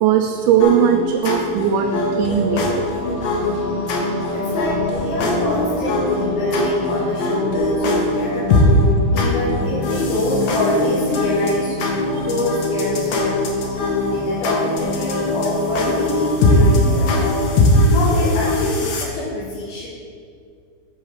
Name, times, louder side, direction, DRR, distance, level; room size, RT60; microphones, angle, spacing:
voice 1, 0.0-1.9 2.2-2.9, right 9 dB, 90° right, 3 dB, 2.5 m, -18 dB
sound 1, 0.6-19.0, left 2 dB, 70° left, 1.7 m, -21 dB
sound 2, 1.7-17.5, left 1 dB, 25° right, 2.5 m, -29 dB
voice 2, 4.3-8.6 9.1-11.8 12.0-13.4 14.0-17.4 17.9-19.9, left 1 dB, 85° left, -7 dB, 3.2 m, -25 dB
sound 3, 4.6-9.0, right 1 dB, 50° left, 2.6 m, -38 dB
8.1 x 5.5 x 6.4 m, 2.2 s
omnidirectional pair, 4.3 m